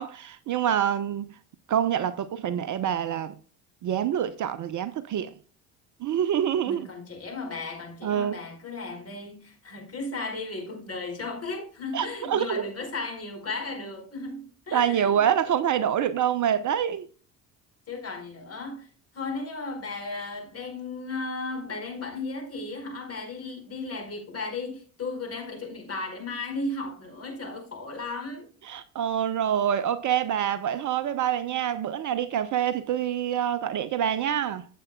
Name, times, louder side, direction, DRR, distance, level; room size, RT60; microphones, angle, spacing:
voice 1, 0.0-1.3 1.7-3.4 3.8-5.3 6.0-6.9 8.0-8.3 11.9-12.6 14.7-17.1 28.6-34.7, right 9 dB, 40° right, 0.8 m, -26 dB
voice 2, 6.6-15.2 17.9-18.9 19.1-28.5, left 3 dB, 30° left, 4.7 m, -35 dB
15.0 x 7.8 x 2.3 m
figure-of-eight pair, 55°, 46 cm